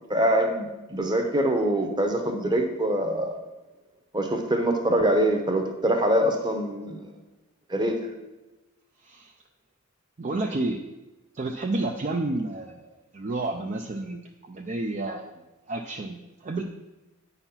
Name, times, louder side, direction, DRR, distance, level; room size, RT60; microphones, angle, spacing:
voice 1, 0.1-3.3 4.1-7.1 7.7-8.0, right 1 dB, 20° right, 4 dB, 0.9 m, -24 dB
voice 2, 10.2-10.8 11.3-14.2 14.5-15.3 15.7-16.6, right 2 dB, 35° right, 2 dB, 0.5 m, -30 dB
8.9 x 4.1 x 5.7 m, 1.1 s
head